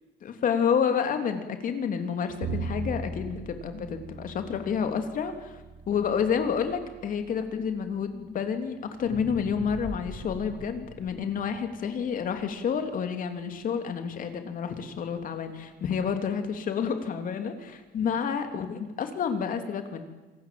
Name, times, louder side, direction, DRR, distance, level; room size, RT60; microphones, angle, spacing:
voice 1, 0.2-20.0, left 7 dB, 55° left, 7 dB, 3.3 m, -29 dB
Bowed string instrument, 2.4-8.6, right 3 dB, 65° right, 4.3 m, -39 dB
sound 1, 9.0-13.2 13.7-13.8, right 1 dB, 10° right, 6.5 m, -43 dB
26.5 x 18.5 x 7.8 m, 1.2 s
cardioid pair, 110°, 17 cm